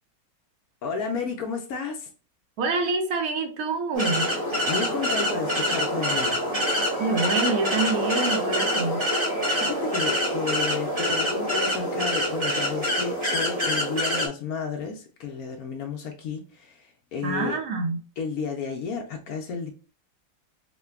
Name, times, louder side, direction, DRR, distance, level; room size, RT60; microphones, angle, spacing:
voice 1, 0.8-2.1 4.7-6.4 9.6-17.6 18.2-19.7, left 5 dB, 80° left, 0.8 m, -32 dB
voice 2, 2.6-4.3 7.0-9.0 17.2-18.0, right 3 dB, 70° right, 0.8 m, -26 dB
sound 1, 3.9-14.3, equal, 20° right, 0.7 m, -25 dB
4.8 x 2.2 x 2.3 m
omnidirectional pair, 2.2 m